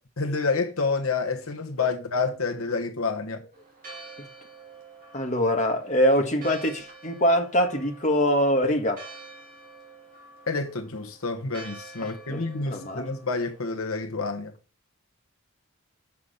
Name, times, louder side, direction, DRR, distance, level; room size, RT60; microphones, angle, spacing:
voice 1, 0.2-3.4 10.5-14.5, left 4 dB, 85° left, 1.2 m, -28 dB
Church bell, 3.5-13.7, right 3 dB, 40° right, 2.7 m, -47 dB
voice 2, 5.1-9.0 12.0-13.1, equal, 35° left, 1.5 m, -24 dB
7.1 x 5.9 x 6.6 m
head